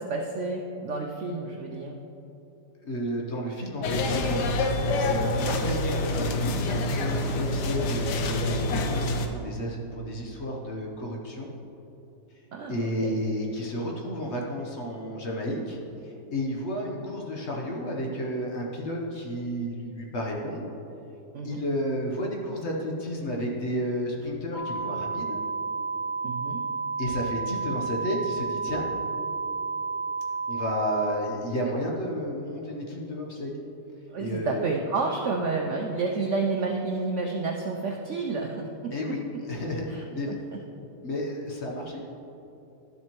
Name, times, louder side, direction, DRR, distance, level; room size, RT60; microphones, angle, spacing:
voice 1, 0.0-2.0 12.5-13.1 21.3-21.6 26.2-26.6 34.1-38.9 39.9-40.6, right 3 dB, 90° right, 1 dB, 0.6 m, -30 dB
voice 2, 2.8-11.5 12.7-20.7 21.4-25.4 27.0-28.9 30.5-33.6 34.2-34.6 38.9-40.4 41.0-42.0, equal, 50° left, -1 dB, 1.0 m, -32 dB
sound 1, 3.8-9.3, left 2 dB, 75° left, 1.2 m, -27 dB
sound 2, 24.5-31.1, right 4 dB, 55° right, 1.7 m, -31 dB
12.0 x 7.4 x 3.0 m, 3.0 s
omnidirectional pair, 1.9 m